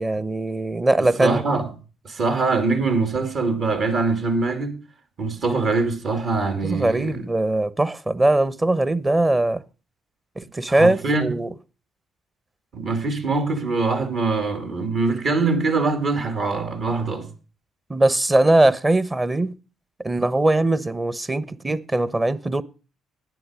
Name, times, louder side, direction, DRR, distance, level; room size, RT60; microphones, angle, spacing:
voice 1, 0.0-1.6 6.6-9.6 10.4-11.5 17.9-19.5 20.0-22.6, right 2 dB, 20° right, 1.0 m, -21 dB
voice 2, 1.2-1.7 2.0-4.8 5.2-7.3 10.7-11.3 12.7-17.3, right 3 dB, 55° right, 2.8 m, -23 dB
11.5 x 9.9 x 5.0 m
hypercardioid pair, 55°, 0 cm